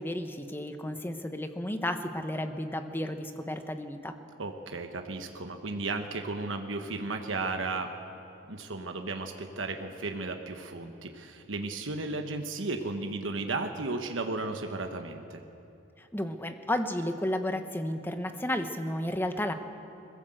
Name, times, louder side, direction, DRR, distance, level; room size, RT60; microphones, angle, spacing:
voice 1, 0.0-4.1 16.0-19.5, left 1 dB, 10° left, 7 dB, 1.0 m, -32 dB
voice 2, 4.4-7.9 8.5-15.4, right 3 dB, 85° right, 5 dB, 1.2 m, -34 dB
21.0 x 16.0 x 7.8 m, 2.8 s
head